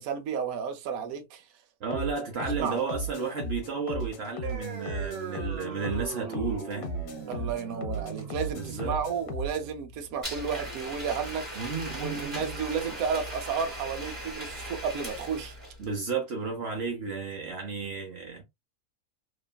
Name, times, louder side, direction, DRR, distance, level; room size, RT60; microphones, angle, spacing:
voice 1, 0.0-1.4 1.9-2.1 2.4-2.8 7.3-11.5 12.0-15.6, right 6 dB, 70° right, 1.1 m, -32 dB
voice 2, 1.8-6.9 8.5-9.0 11.6-12.6 15.8-18.4, right 4 dB, 55° right, 0.8 m, -33 dB
sound 1, 1.9-9.7, right 1 dB, 70° left, 1.1 m, -36 dB
sound 2, 4.4-11.4, right 6 dB, 90° right, 1.3 m, -41 dB
Domestic sounds home sounds, 10.2-15.9, equal, 25° right, 1.0 m, -38 dB
2.9 x 2.4 x 2.2 m
omnidirectional pair, 1.6 m